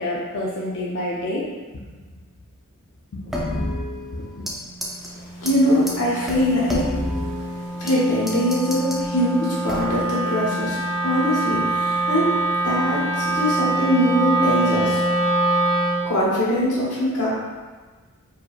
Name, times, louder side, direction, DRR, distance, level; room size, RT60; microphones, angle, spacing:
voice 1, 0.0-1.5 3.1-4.5, left 1 dB, 55° left, -6 dB, 0.5 m, -29 dB
sound 1, 3.3-4.6 4.8-5.1 5.5-5.6 5.9-6.0 6.3-8.0 8.3-9.0 9.7-10.1, left 1 dB, ahead, 0.4 m, -29 dB
Wind instrument woodwind instrument, 4.5-16.1, right 2 dB, 40° right, 0.9 m, -25 dB
voice 2, 5.4-12.4 12.6-15.0 16.0-17.3, equal, 90° left, -6 dB, 1.3 m, -22 dB
4.6 x 3.0 x 2.4 m, 1.4 s
head